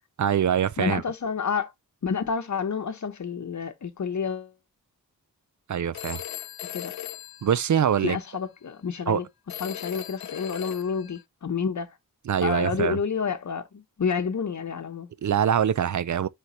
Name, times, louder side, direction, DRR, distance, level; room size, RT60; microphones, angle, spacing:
voice 1, 0.2-1.0 5.7-6.2 7.4-8.2 9.1-9.2 12.3-13.0 15.2-16.3, right 9 dB, 55° right, 0.4 m, -24 dB
voice 2, 0.8-1.7 2.0-4.5 6.6-7.0 8.0-9.3 9.5-12.0 12.4-15.1, left 6 dB, 55° left, 0.9 m, -29 dB
Telephone, 5.9-8.3 9.5-11.2, left 12 dB, 90° left, 0.6 m, -39 dB
10.0 x 3.3 x 3.0 m
wide cardioid pair, 135°, 35 cm